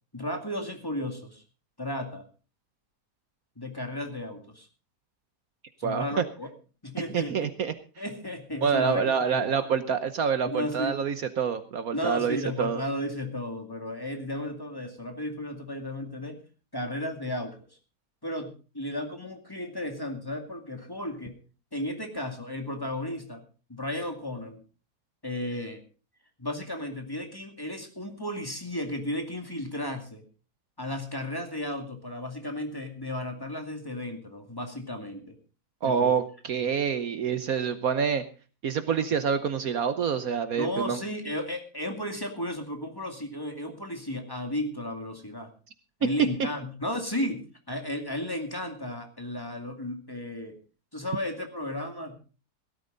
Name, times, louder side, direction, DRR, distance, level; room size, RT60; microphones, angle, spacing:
voice 1, 0.1-1.4 1.8-2.2 3.6-4.7 5.8-6.5 6.8-7.5 8.0-9.7 10.4-11.0 11.9-16.4 16.7-17.6 18.2-21.4 21.7-23.4 23.7-24.6 25.2-25.8 26.4-30.2 30.8-35.4 35.8-36.1 40.6-45.5 46.0-50.6 50.9-52.2, left 1 dB, 15° left, 4 dB, 2.2 m, -34 dB
voice 2, 5.8-6.2 7.1-7.7 8.6-12.8 35.8-38.2 38.6-41.0, right 7 dB, 65° right, 11 dB, 1.3 m, -27 dB
17.0 x 13.0 x 3.9 m, 0.35 s
omnidirectional pair, 1.8 m